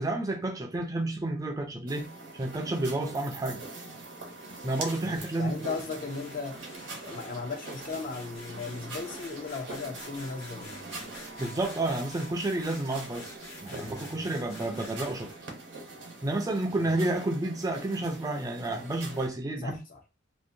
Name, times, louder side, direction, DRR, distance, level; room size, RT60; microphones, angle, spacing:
voice 1, 0.0-2.1 2.3-3.6 4.6-5.7 11.4-15.3 16.2-19.8, right 2 dB, 20° right, 0.4 m, -30 dB
sound 1, 1.9-19.3, right 2 dB, 75° right, 0.8 m, -43 dB
sound 2, 4.7-15.3, left 2 dB, 80° left, 1.3 m, -49 dB
voice 2, 5.0-6.6 7.0-11.1 13.7-14.3 16.8-17.0 19.6-20.0, left 4 dB, 45° left, 0.5 m, -37 dB
2.6 x 2.0 x 2.5 m
head